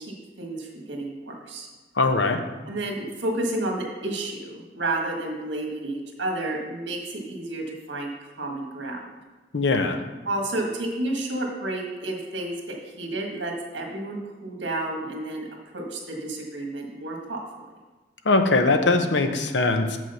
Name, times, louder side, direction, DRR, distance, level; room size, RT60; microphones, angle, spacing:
voice 1, 0.0-1.7 2.6-9.0 10.2-15.5 15.7-17.4, right 2 dB, 80° right, 1 dB, 1.7 m, -31 dB
voice 2, 2.0-2.4 9.5-10.0 18.3-20.0, left 3 dB, 75° left, 6 dB, 0.8 m, -21 dB
7.4 x 6.2 x 5.5 m, 1.2 s
head